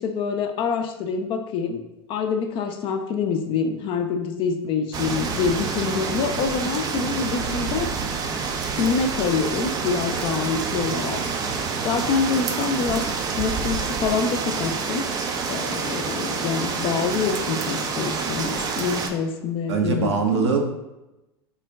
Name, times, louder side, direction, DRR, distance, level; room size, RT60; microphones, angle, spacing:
voice 1, 0.0-1.8 2.1-7.9 8.7-13.0 13.4-15.1 15.5-20.5, left 5 dB, 35° left, 5 dB, 0.4 m, -26 dB
sound 1, 4.9-19.1, right 5 dB, 25° right, 0.4 m, -27 dB
voice 2, 19.7-20.6, right 5 dB, 75° right, 2 dB, 0.6 m, -22 dB
3.8 x 2.1 x 3.4 m, 0.97 s
hypercardioid pair, 90°, 14 cm